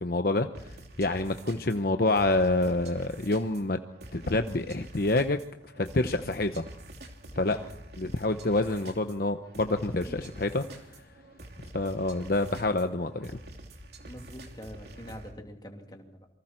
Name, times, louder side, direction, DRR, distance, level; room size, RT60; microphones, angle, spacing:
voice 1, 0.0-3.8 4.1-5.4 5.8-6.7 7.3-7.6 8.0-10.6 11.7-13.3, left 2 dB, 55° left, 7 dB, 0.9 m, -27 dB
sound 1, 0.5-15.3, right 1 dB, 65° right, 3.2 m, -47 dB
voice 2, 14.0-16.3, equal, 25° left, 2 dB, 2.9 m, -45 dB
28.0 x 24.0 x 4.5 m, 0.73 s
head